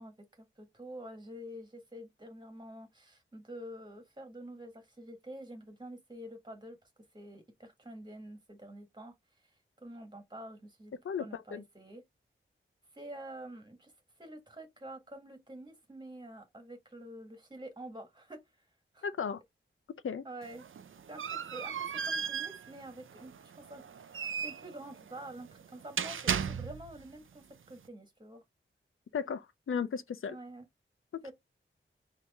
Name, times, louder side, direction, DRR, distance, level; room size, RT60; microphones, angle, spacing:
voice 1, 0.0-6.8 7.1-9.1 9.4-9.5 9.8-12.0 12.9-13.9 14.2-18.4 18.9-19.1 20.2-20.7 21.1-28.4 30.3-30.7 31.2-31.3, right 1 dB, 20° right, 1.7 m, -48 dB
voice 2, 11.0-11.6 19.0-19.4 20.0-20.2 29.1-30.3, left 6 dB, 80° left, 0.6 m, -35 dB
Door-squeak-clunk, 20.4-27.0, right 7 dB, 75° right, 0.5 m, -37 dB
4.3 x 2.9 x 3.5 m
wide cardioid pair, 100°, 21 cm